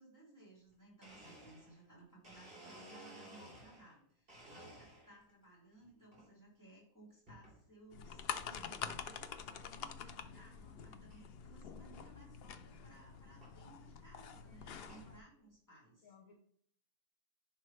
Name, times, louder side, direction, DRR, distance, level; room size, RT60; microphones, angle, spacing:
voice 1, 0.0-16.1, right 2 dB, 10° left, -5 dB, 3.1 m, -61 dB
Domestic sounds home sounds, 0.7-0.8 1.0-3.9 4.3-5.3 5.8-6.3 7.3-7.6 8.2-8.3 9.1-9.2 9.5-9.8 10.3-10.4 10.5-10.6 11.1-11.2 12.5-12.6 13.4-13.6 14.2-15.1, right 1 dB, 35° right, 3.7 m, -56 dB
sound 1, 7.9-15.2, left 7 dB, 80° left, 0.5 m, -47 dB
voice 2, 14.3-14.7 16.0-16.3, left 5 dB, 60° left, 0 dB, 1.4 m, -63 dB
10.5 x 4.2 x 3.4 m, 0.62 s
omnidirectional pair, 1.7 m